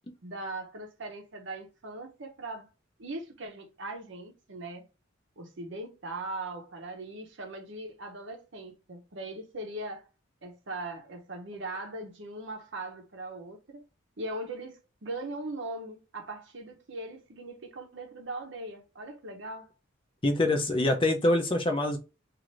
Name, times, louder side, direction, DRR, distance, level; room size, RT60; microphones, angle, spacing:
voice 1, 0.2-2.7 3.0-4.8 5.4-10.1 10.4-13.8 14.2-19.7, right 2 dB, 65° right, 0.7 m, -40 dB
voice 2, 20.2-22.0, left 1 dB, 25° left, 0.6 m, -25 dB
2.7 x 2.5 x 3.1 m
head